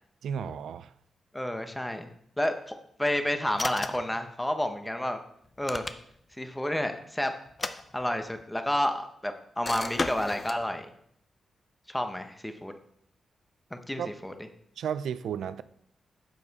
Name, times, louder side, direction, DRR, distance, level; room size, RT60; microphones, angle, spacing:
voice 1, 0.2-0.9 14.0-14.1 14.8-15.6, right 8 dB, 85° right, 0.4 m, -33 dB
voice 2, 1.3-2.1 2.4-5.2 5.6-5.9 6.4-7.3 7.9-10.9 11.9-12.7 13.7-14.3, left 1 dB, 5° left, 0.9 m, -30 dB
sound 1, 3.6-4.2 5.4-6.3 7.5-8.4 9.6-10.6, left 3 dB, 30° left, 0.6 m, -34 dB
10.0 x 7.3 x 4.1 m
wide cardioid pair, 120°, 0 cm